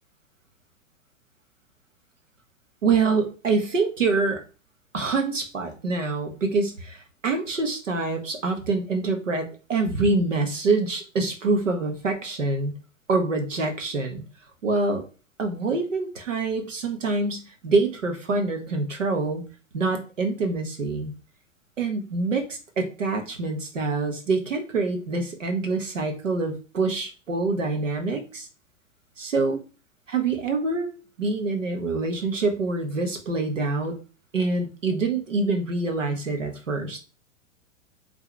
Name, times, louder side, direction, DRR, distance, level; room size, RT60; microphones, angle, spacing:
voice 1, 2.8-4.4 4.9-12.7 13.1-14.3 14.6-15.0 15.4-19.4 19.7-21.1 21.8-28.5 29.2-29.6 30.1-30.9 31.2-34.0 34.3-37.0, right 3 dB, 70° right, 5 dB, 1.6 m, -25 dB
8.2 x 3.7 x 3.4 m, 0.35 s
figure-of-eight pair, 100°, 39 cm